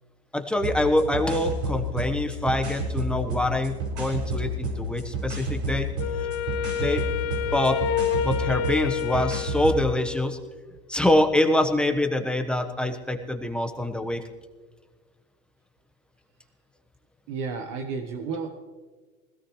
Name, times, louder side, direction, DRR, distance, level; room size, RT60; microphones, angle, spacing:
voice 1, 0.3-5.9 6.8-7.0 7.5-7.8 8.2-10.4 10.9-14.2, left 1 dB, 5° left, 5 dB, 1.2 m, -25 dB
sound 1, 0.6-9.9, equal, 85° right, 5.0 m, -31 dB
Wind instrument woodwind instrument, 6.0-10.4, left 7 dB, 75° left, 1.2 m, -29 dB
voice 2, 17.3-18.5, right 5 dB, 65° right, 4 dB, 1.3 m, -32 dB
20.5 x 17.0 x 3.2 m, 1.4 s
supercardioid pair, 115°, 31 cm